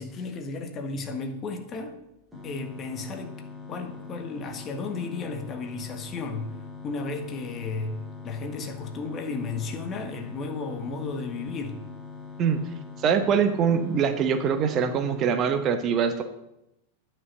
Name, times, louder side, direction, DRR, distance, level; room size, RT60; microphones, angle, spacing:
voice 1, 0.0-1.9 2.4-3.3 3.7-6.6 6.8-11.8, left 3 dB, 30° left, 5 dB, 1.6 m, -34 dB
sound 1, 2.3-15.3, left 5 dB, ahead, 4.3 m, -42 dB
voice 2, 13.0-16.2, right 7 dB, 30° right, 8 dB, 0.9 m, -23 dB
9.4 x 5.6 x 7.6 m, 0.86 s
figure-of-eight pair, 90°, 0 cm